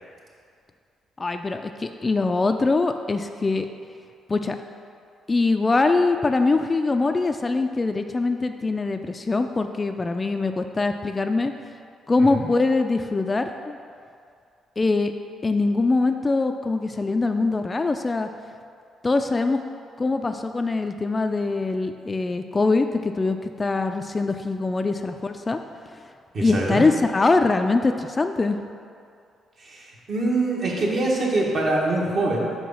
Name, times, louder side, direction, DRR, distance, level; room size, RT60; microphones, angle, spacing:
voice 1, 1.2-3.7 4.3-4.6 5.3-11.5 12.1-13.8 14.8-15.1 15.4-18.3 19.0-19.6 20.0-25.6 26.4-28.6, left 3 dB, 25° left, 7 dB, 0.3 m, -23 dB
voice 2, 26.3-26.8 29.6-32.5, right 2 dB, 55° right, -3 dB, 1.4 m, -24 dB
5.0 x 4.7 x 5.5 m, 2.3 s
cardioid pair, 90°, 0 cm